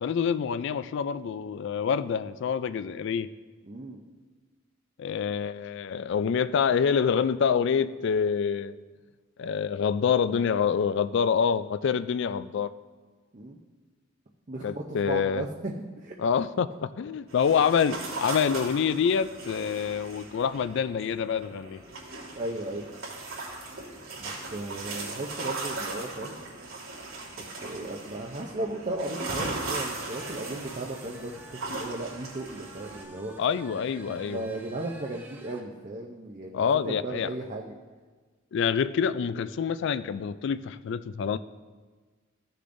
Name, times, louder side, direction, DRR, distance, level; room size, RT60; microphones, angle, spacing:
voice 1, 0.0-3.3 5.0-8.7 9.4-12.7 14.6-15.4 16.2-21.8 33.4-34.5 36.5-37.3 38.5-41.4, left 7 dB, 60° left, 14 dB, 0.3 m, -26 dB
voice 2, 3.6-4.0 13.3-13.6 14.5-16.2 22.4-22.9 24.2-26.4 27.6-33.3 34.1-37.7, right 2 dB, 35° right, 0 dB, 0.6 m, -36 dB
sound 1, 17.3-33.0, right 3 dB, 85° right, 2.2 m, -38 dB
sound 2, 29.8-35.7, right 2 dB, 10° right, 0.8 m, -51 dB
14.5 x 6.7 x 2.6 m, 1.4 s
head